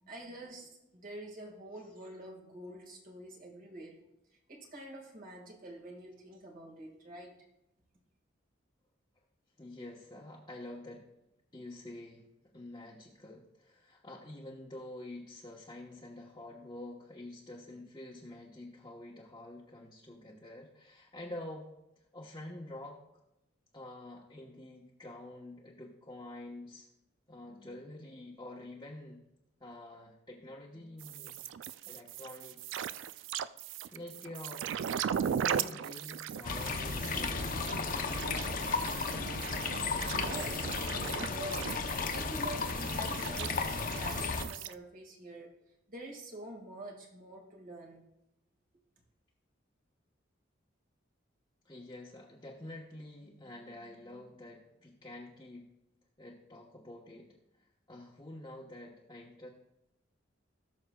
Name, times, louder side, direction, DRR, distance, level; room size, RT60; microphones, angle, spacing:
voice 1, 0.1-4.0 4.5-7.4 39.8-41.8 42.1-45.6 45.9-48.0, right 1 dB, 45° right, 0 dB, 1.9 m, -46 dB
voice 2, 9.6-11.1 11.5-12.3 12.5-23.0 23.7-26.9 27.3-29.2 29.6-31.4 31.9-32.9 33.9-34.7 35.2-38.1 51.6-55.7 56.2-57.4 57.9-59.5, left 1 dB, 20° left, -5 dB, 1.0 m, -47 dB
sound 1, 31.0-44.7, right 8 dB, 70° right, 0.3 m, -38 dB
sound 2, 36.4-44.5, left 4 dB, 45° left, 0.7 m, -34 dB
18.5 x 6.4 x 2.3 m, 0.88 s
head